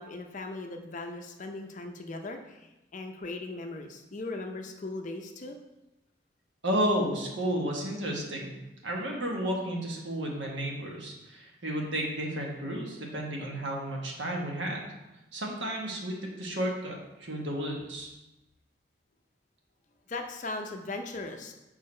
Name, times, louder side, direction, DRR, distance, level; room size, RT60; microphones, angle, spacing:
voice 1, 0.0-5.6 20.1-21.5, left 2 dB, 40° left, 4 dB, 0.5 m, -38 dB
voice 2, 6.6-8.5 8.8-14.8 15.3-18.1, equal, 65° right, 0 dB, 1.3 m, -32 dB
6.6 x 4.7 x 4.3 m, 0.98 s
head